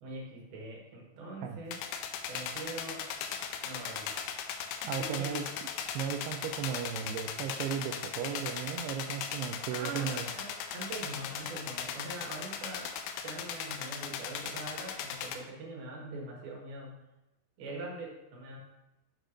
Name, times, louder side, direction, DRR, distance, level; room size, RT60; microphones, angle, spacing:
voice 1, 0.0-1.8 2.3-3.2 3.6-4.2 4.8-5.5 9.7-12.9 13.2-17.0 17.6-18.6, right 2 dB, 65° right, -1 dB, 3.0 m, -43 dB
sound 1, 1.7-15.4, left 7 dB, 90° left, 3.0 m, -38 dB
voice 2, 4.8-5.5 5.9-10.3, right 8 dB, 90° right, 7 dB, 2.3 m, -35 dB
10.5 x 6.5 x 2.6 m, 0.97 s
omnidirectional pair, 5.2 m